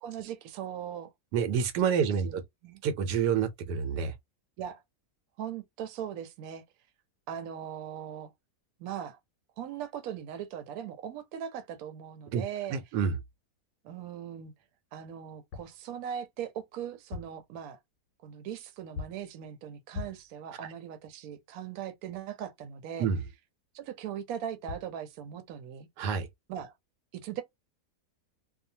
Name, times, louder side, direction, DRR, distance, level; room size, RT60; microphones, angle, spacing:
voice 1, 0.0-1.1 2.2-2.8 4.6-4.8 5.4-6.6 7.3-8.3 8.8-9.2 9.6-12.8 13.8-14.5 14.9-17.8 18.2-23.1 23.7-25.9 26.5-26.7 27.1-27.4, right 9 dB, 70° right, 1.0 m, -39 dB
voice 2, 1.3-2.4 2.8-4.1 12.3-12.4 12.7-13.2 23.0-23.2 26.0-26.3, right 7 dB, 90° right, 1.2 m, -28 dB
sound 1, 15.5-15.8 16.9-17.5 18.9-19.3 19.9-20.4 24.4-24.5 24.7-25.0, left 5 dB, 90° left, 1.2 m, -41 dB
2.7 x 2.2 x 2.6 m
omnidirectional pair, 1.7 m